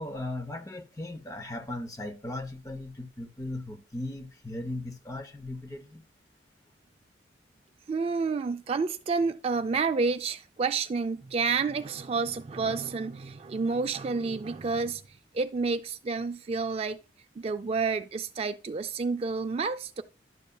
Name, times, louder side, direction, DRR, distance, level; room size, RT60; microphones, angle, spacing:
voice 1, 0.0-6.0, left 2 dB, 20° left, 0.7 m, -37 dB
voice 2, 7.9-15.0 15.3-17.0 17.4-20.0, right 4 dB, 35° right, 0.3 m, -29 dB
11.0 x 6.7 x 2.2 m
head